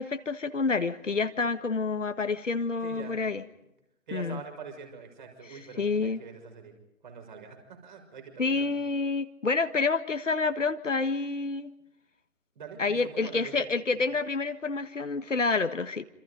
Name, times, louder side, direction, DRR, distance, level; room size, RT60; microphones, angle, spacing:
voice 1, 0.0-3.4 4.1-4.4 5.5-6.2 8.4-11.7 12.8-16.0, left 4 dB, 55° left, 9 dB, 1.8 m, -28 dB
voice 2, 2.8-3.2 4.1-6.7 7.0-8.7 12.5-13.7 13.9-14.0, right 6 dB, 30° right, 4 dB, 6.5 m, -44 dB
28.0 x 27.0 x 5.2 m, 0.86 s
figure-of-eight pair, 150°, 44 cm